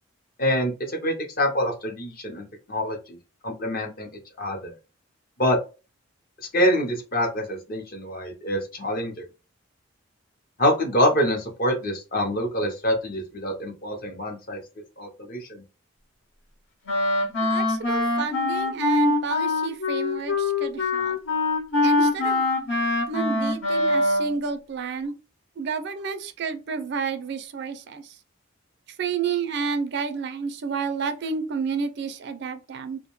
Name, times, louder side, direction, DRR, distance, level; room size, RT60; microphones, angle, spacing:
voice 1, 0.4-3.2 3.4-4.1 4.4-4.7 5.4-5.6 6.5-9.2 10.6-14.6 15.0-15.6, equal, 45° left, 0.6 m, -25 dB
Wind instrument woodwind instrument, 16.9-24.4, left 2 dB, 70° left, 1.0 m, -23 dB
voice 2, 17.4-21.2 21.8-22.5 23.1-25.1 25.6-28.2 29.0-33.0, right 5 dB, 55° right, 0.4 m, -30 dB
2.5 x 2.1 x 2.9 m
head